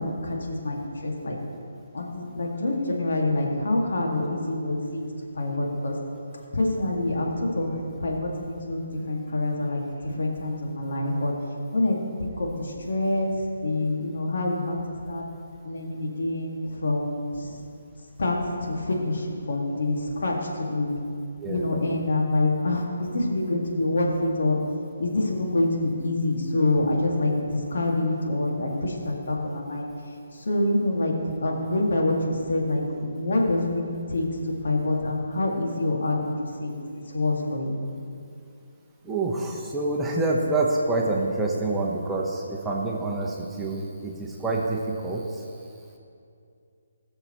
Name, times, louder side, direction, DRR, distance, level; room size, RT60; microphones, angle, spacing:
voice 1, 0.0-1.4 1.9-5.0 5.3-6.0 6.5-11.3 11.7-14.8 15.1-15.2 15.6-17.6 18.2-18.4 18.6-20.9 21.5-24.6 25.0-29.9 30.3-34.3 34.6-36.7 37.1-37.8, left 2 dB, 65° left, -1 dB, 2.0 m, -26 dB
voice 2, 39.0-45.4, right 2 dB, 10° right, -3 dB, 0.9 m, -27 dB
19.0 x 6.8 x 3.0 m, 2.5 s
figure-of-eight pair, 145°, 0 cm